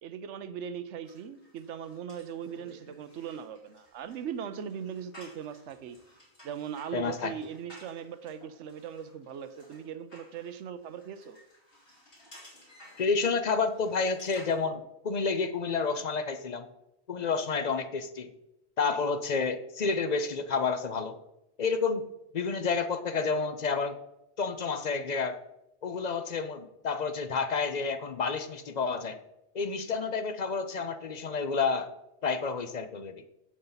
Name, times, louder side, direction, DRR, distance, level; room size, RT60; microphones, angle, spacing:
voice 1, 0.0-6.0 6.4-11.4, right 8 dB, 90° right, 11 dB, 1.0 m, -39 dB
sound 1, 1.0-14.6, equal, 75° left, 3.9 m, -55 dB
voice 2, 6.9-7.3 13.0-16.7 17.1-18.3 18.8-21.2 21.6-22.1 22.3-24.0 24.4-25.4 25.8-29.2 29.5-31.9 32.2-33.1, left 4 dB, 50° left, 10 dB, 0.6 m, -30 dB
16.0 x 5.5 x 3.9 m, 0.90 s
omnidirectional pair, 1.2 m